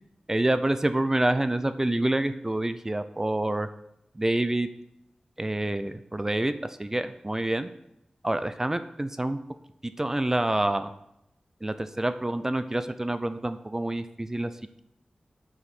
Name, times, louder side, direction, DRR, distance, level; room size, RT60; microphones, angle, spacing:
voice 1, 0.3-3.7 4.2-4.7 5.4-7.7 8.2-9.4 9.8-10.9 11.6-14.5, right 1 dB, 20° right, 11 dB, 0.4 m, -27 dB
8.4 x 4.9 x 5.9 m, 0.84 s
wide cardioid pair, 85°, 2 cm